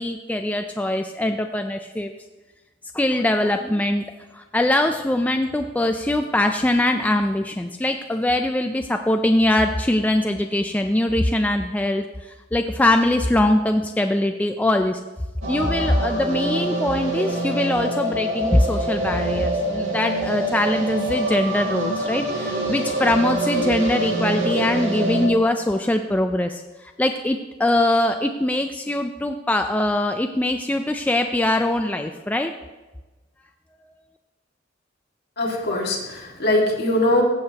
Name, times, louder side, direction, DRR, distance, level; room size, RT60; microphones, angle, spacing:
voice 1, 0.0-2.1 2.9-4.0 4.3-15.0 15.5-32.5, left 1 dB, 10° left, 5 dB, 0.3 m, -22 dB
sound 1, 15.4-25.3, right 1 dB, 80° right, 2.1 m, -25 dB
voice 2, 35.4-37.2, left 1 dB, 55° left, -1 dB, 1.9 m, -21 dB
15.0 x 7.4 x 2.9 m, 1.2 s
head